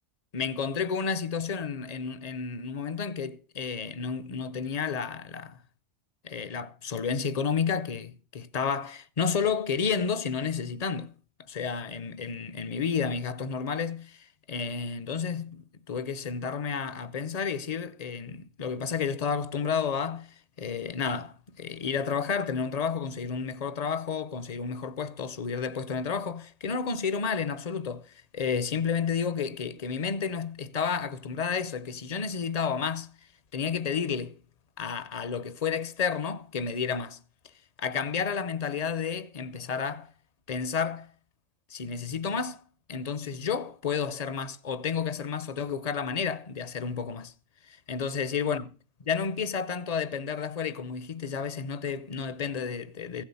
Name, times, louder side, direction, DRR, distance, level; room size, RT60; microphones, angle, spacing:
voice 1, 0.3-5.6 6.2-11.1 11.5-20.3 20.6-33.1 33.5-34.4 34.8-37.2 37.8-40.1 40.5-41.1 41.7-42.6 42.9-47.3 47.7-48.7 49.1-53.2, left 6 dB, 35° left, 0.9 m, -31 dB
16.0 x 8.2 x 7.1 m
omnidirectional pair, 1.2 m